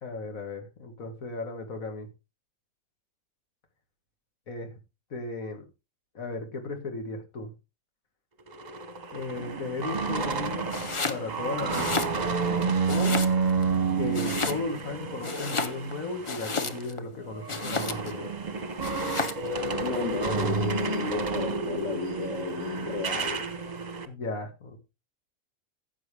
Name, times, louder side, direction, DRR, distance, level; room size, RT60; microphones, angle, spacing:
voice 1, 0.0-2.1 4.5-4.8 5.1-5.6 6.1-7.5 9.1-10.7 11.1-12.1 12.9-13.2 14.0-18.3 24.1-24.8, left 3 dB, 80° left, 2.1 m, -35 dB
sound 1, 8.5-16.9 17.2-24.0, right 4 dB, 35° right, 0.9 m, -30 dB
Domestic sounds home sounds, 10.7-11.2 11.6-12.5 12.9-13.7 14.1-14.9 15.2-17.0 17.5-18.2 18.8-19.5, left 4 dB, 30° left, 0.6 m, -32 dB
voice 2, 19.8-23.5, left 4 dB, 55° left, 1.9 m, -33 dB
15.0 x 6.4 x 3.3 m
omnidirectional pair, 1.4 m